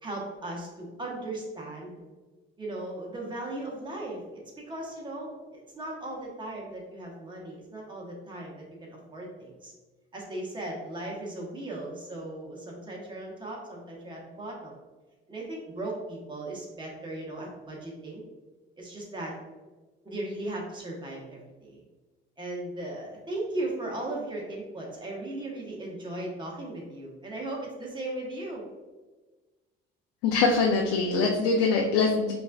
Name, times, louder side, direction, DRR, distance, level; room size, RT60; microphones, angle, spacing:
voice 1, 0.0-1.9 2.6-9.7 10.1-14.7 15.3-18.2 18.8-19.3 20.0-21.8 22.4-28.6, right 1 dB, 20° right, -2 dB, 1.1 m, -37 dB
voice 2, 30.2-32.3, left 4 dB, 90° left, 0 dB, 0.5 m, -23 dB
5.1 x 2.6 x 2.3 m, 1.3 s
cardioid pair, 105°, 21 cm